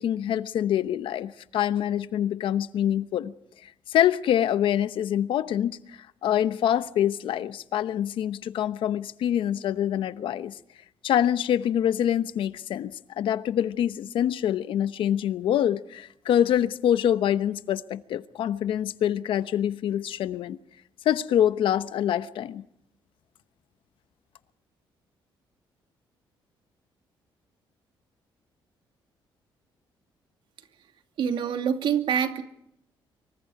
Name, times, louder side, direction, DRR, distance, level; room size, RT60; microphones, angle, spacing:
voice 1, 0.0-3.3 3.6-10.6 11.0-20.6 21.0-22.6, left 10 dB, 75° left, 0.9 m, -25 dB
voice 2, 31.2-32.4, right 8 dB, 70° right, 2.3 m, -25 dB
26.0 x 24.0 x 4.8 m
cardioid pair, 135°, 9 cm